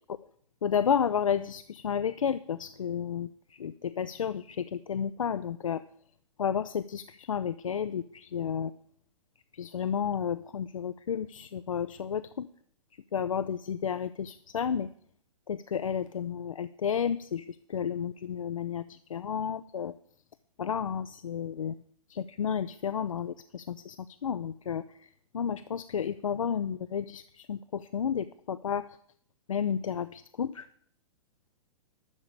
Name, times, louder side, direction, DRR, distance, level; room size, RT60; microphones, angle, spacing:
voice 1, 0.6-5.8 6.4-8.7 9.5-12.5 13.1-14.9 15.5-19.9 20.6-21.7 22.1-28.9 29.5-30.7, left 7 dB, 70° left, 13 dB, 0.5 m, -32 dB
12.5 x 4.9 x 8.7 m, 0.62 s
figure-of-eight pair, 110°, 18 cm